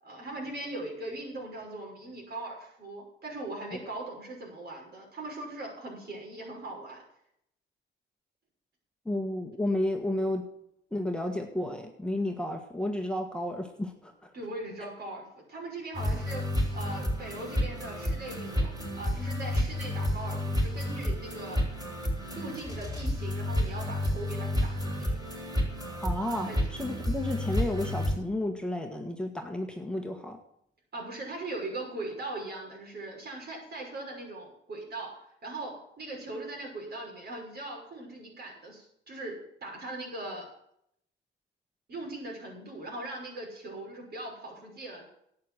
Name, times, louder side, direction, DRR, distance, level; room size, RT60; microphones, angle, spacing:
voice 1, 0.0-7.0 14.3-16.4 16.7-21.6 22.3-25.2 26.4-26.6 30.9-35.1 35.4-40.5 41.9-45.1, right 2 dB, 55° right, 0 dB, 6.0 m, -40 dB
voice 2, 9.0-10.4 10.9-14.3 14.8-14.9 26.0-30.4, left 1 dB, 5° left, 3 dB, 1.5 m, -32 dB
sound 1, 15.9-28.1, equal, 20° right, 5.4 m, -30 dB
11.5 x 8.8 x 7.8 m, 0.74 s
cardioid pair, 100°, 19 cm